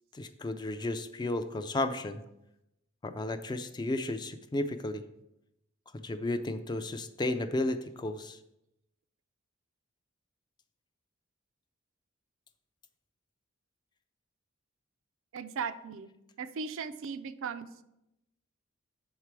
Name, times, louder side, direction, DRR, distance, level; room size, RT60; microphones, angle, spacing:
voice 1, 0.1-2.2 3.0-5.0 5.9-8.4, left 2 dB, 20° left, 9 dB, 0.4 m, -33 dB
voice 2, 15.3-16.1 16.4-17.8, right 5 dB, 65° right, 11 dB, 0.4 m, -37 dB
6.6 x 4.7 x 4.6 m, 0.88 s
head